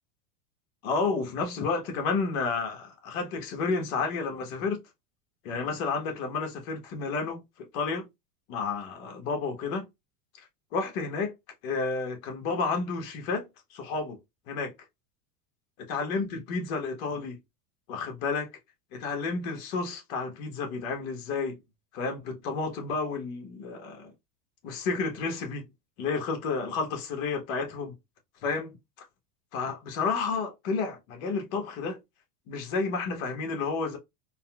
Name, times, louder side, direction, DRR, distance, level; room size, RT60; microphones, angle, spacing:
voice 1, 0.8-4.8 5.4-8.1 8.5-9.9 10.7-11.3 11.6-14.2 14.5-14.7 15.9-17.4 17.9-18.5 18.9-21.6 21.9-24.1 24.6-25.7 26.0-27.9 28.4-28.8 29.5-32.0 32.5-34.0, left 4 dB, 60° left, 1.3 m, -31 dB
4.1 x 2.1 x 2.3 m
supercardioid pair, 125°, 48 cm